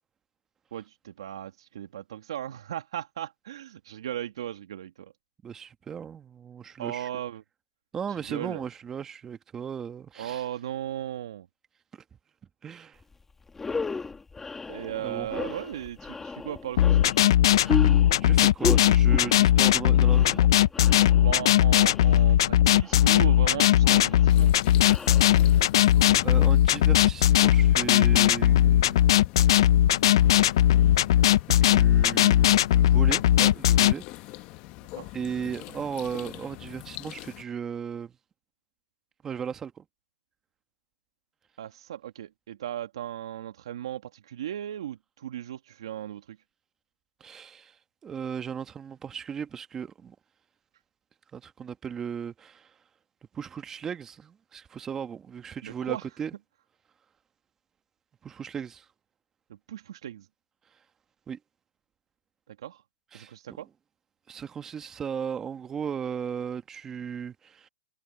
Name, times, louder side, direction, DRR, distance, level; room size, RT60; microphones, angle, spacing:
voice 1, 0.7-5.1 6.8-7.4 8.3-8.6 10.2-11.5 14.7-17.1 21.2-24.5 34.9-35.1 41.6-46.4 55.6-56.1 59.7-60.3 62.5-62.8 63.1-63.7, right 11 dB, 65° right, 1.8 m, -37 dB
voice 2, 5.4-7.1 7.9-10.4 12.6-13.0 15.0-15.3 17.4-20.4 25.3-25.4 26.2-29.0 30.3-30.4 30.8-30.9 31.3-34.0 35.1-38.1 39.2-39.8 47.2-47.8 48.0-50.2 51.3-52.7 53.3-56.3 58.2-58.8 61.3-61.4 63.1-63.3 64.3-67.7, right 7 dB, 15° right, 1.6 m, -36 dB
sound 1, 13.0-13.1 13.5-25.8, left 4 dB, 10° left, 2.2 m, -35 dB
sound 2, 16.8-33.9, left 12 dB, 60° left, 0.7 m, -19 dB
sound 3, 24.3-37.4, left 21 dB, 35° left, 1.2 m, -43 dB
hypercardioid pair, 140°, 3 cm